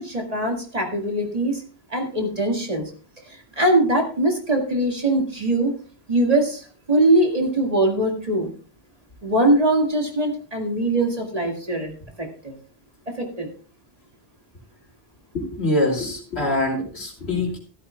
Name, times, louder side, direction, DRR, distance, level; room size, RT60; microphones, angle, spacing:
voice 1, 0.0-1.6 1.9-2.8 3.2-5.7 6.1-8.5 9.2-12.5 13.1-13.5, right 1 dB, 35° right, 1 dB, 2.0 m, -22 dB
voice 2, 15.3-17.6, left 1 dB, 75° left, 0 dB, 3.0 m, -24 dB
14.0 x 13.0 x 2.3 m, 0.40 s
omnidirectional pair, 1.1 m